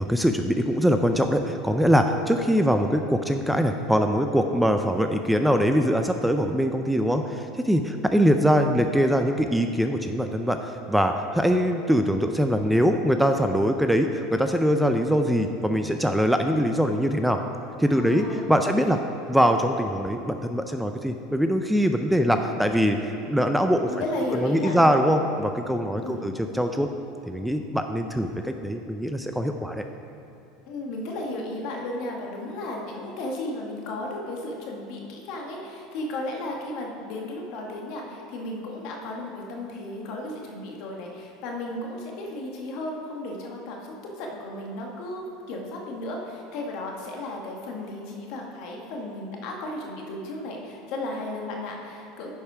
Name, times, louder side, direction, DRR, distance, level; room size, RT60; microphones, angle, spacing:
voice 1, 0.0-17.4 17.8-19.0 19.3-23.0 23.3-24.0 24.3-26.9 27.3-29.8, equal, 5° right, 6 dB, 0.5 m, -23 dB
voice 2, 17.9-18.9 22.1-22.4 23.9-25.0 26.0-26.3 30.7-52.3, left 1 dB, 60° left, 0 dB, 1.6 m, -34 dB
10.5 x 5.4 x 4.9 m, 2.8 s
supercardioid pair, 100°, 0 cm